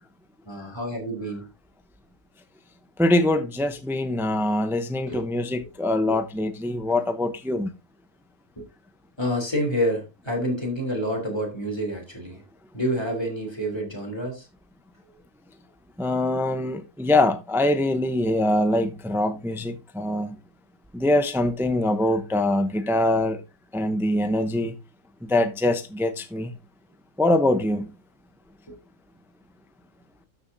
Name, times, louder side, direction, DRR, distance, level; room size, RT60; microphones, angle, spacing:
voice 1, 0.4-1.5 5.1-5.2 5.6-5.7 6.1-6.2 8.6-8.7 9.2-12.4 12.7-14.5 28.7-28.8, equal, 20° left, 3.4 m, -28 dB
voice 2, 3.0-7.7 16.0-20.4 20.9-23.4 23.7-24.7 25.2-26.5 27.2-27.9, left 1 dB, ahead, 0.6 m, -23 dB
12.5 x 6.9 x 2.8 m
omnidirectional pair, 1.5 m